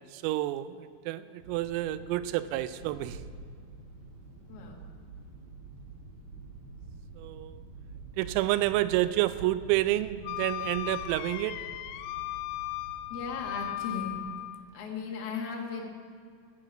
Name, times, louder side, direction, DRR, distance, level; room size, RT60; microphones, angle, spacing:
voice 1, 0.1-0.7 1.1-3.2 7.2-7.5 8.2-11.6, right 15 dB, 90° right, 14 dB, 3.3 m, -29 dB
sound 1, 1.4-14.2, right 3 dB, 55° right, 2.1 m, -47 dB
voice 2, 4.5-4.9 13.1-14.2 14.7-15.8, left 5 dB, 60° left, -1 dB, 1.6 m, -36 dB
Wind instrument woodwind instrument, 10.2-14.6, left 16 dB, 85° left, 3.0 m, -37 dB
14.5 x 7.8 x 7.4 m, 2.2 s
omnidirectional pair, 5.9 m